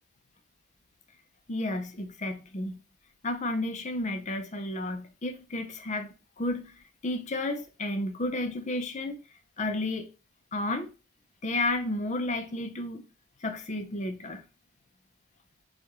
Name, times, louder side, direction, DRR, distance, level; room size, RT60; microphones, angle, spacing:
voice 1, 1.5-2.8 3.2-6.7 7.0-9.2 9.6-10.1 10.5-10.9 11.4-13.0 13.4-14.4, left 2 dB, 35° left, 0.7 m, -32 dB
7.1 x 2.5 x 3.1 m
head